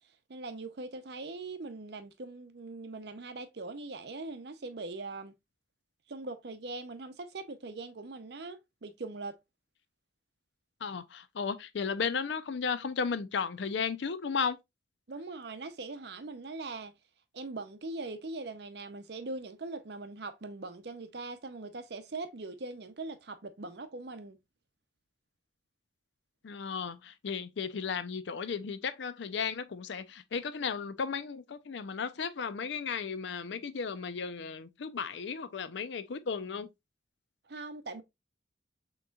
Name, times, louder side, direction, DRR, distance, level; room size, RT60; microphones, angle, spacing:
voice 1, 0.3-5.3 6.1-9.4 15.1-16.9 17.3-24.4 37.5-38.0, right 3 dB, 60° right, 0.6 m, -41 dB
voice 2, 10.8-14.6 26.4-36.7, left 5 dB, 70° left, 0.5 m, -35 dB
6.2 x 3.0 x 2.3 m
head